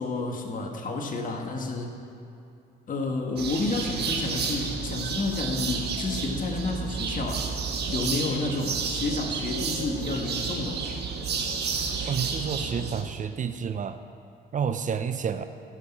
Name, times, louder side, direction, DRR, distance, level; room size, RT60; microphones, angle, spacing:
voice 1, 0.0-2.0 2.9-7.5 7.9-10.8, left 3 dB, 45° left, 2 dB, 1.5 m, -30 dB
sound 1, 3.4-13.0, right 5 dB, 60° right, 1.4 m, -31 dB
voice 2, 12.1-14.0 14.5-15.4, right 7 dB, 40° right, 10 dB, 0.6 m, -29 dB
15.5 x 5.8 x 5.9 m, 2.6 s
cardioid pair, 80°, 20 cm